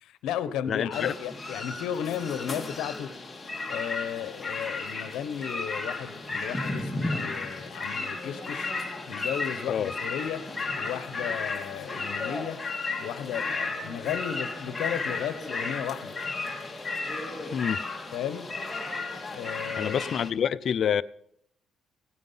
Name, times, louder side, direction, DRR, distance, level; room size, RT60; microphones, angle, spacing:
voice 1, 0.0-3.1 3.7-8.7 9.1-10.4 10.8-12.6 13.0-16.2 18.1-18.5 19.3-20.0, left 9 dB, 85° left, 0.9 m, -34 dB
voice 2, 0.7-1.1 9.7-9.9 17.5-17.8 19.8-21.0, left 8 dB, 60° left, 0.5 m, -27 dB
sound 1, 0.9-20.3, left 3 dB, 20° left, 2.4 m, -34 dB
17.0 x 9.6 x 5.6 m
cardioid pair, 90°, 0 cm